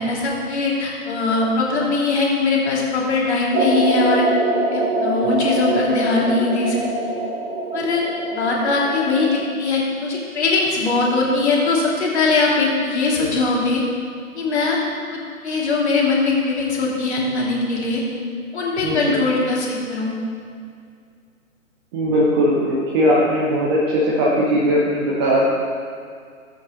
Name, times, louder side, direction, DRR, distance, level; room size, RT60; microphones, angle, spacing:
voice 1, 0.0-4.2 4.7-6.8 7.7-8.0 8.3-13.8 14.3-14.8 15.1-18.0 18.5-20.1, left 3 dB, 50° left, -4 dB, 2.8 m, -21 dB
sound 1, 3.5-9.5, right 2 dB, 55° right, 1.3 m, -24 dB
voice 2, 18.8-19.2 21.9-25.4, equal, 15° right, -5 dB, 0.8 m, -19 dB
15.0 x 8.6 x 3.1 m, 2.2 s
figure-of-eight pair, 130°, 42 cm